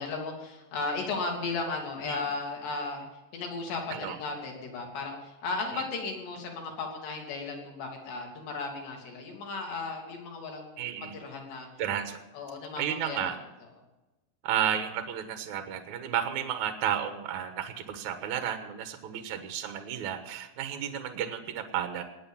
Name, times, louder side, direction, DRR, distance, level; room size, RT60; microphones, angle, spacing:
voice 1, 0.0-3.1 3.3-11.7 12.3-13.4, left 3 dB, 65° left, 1 dB, 5.0 m, -35 dB
voice 2, 10.8-11.1 11.8-12.2 12.8-13.4 14.4-22.0, right 9 dB, 75° right, 8 dB, 1.8 m, -32 dB
19.5 x 9.3 x 7.3 m, 1.0 s
omnidirectional pair, 5.3 m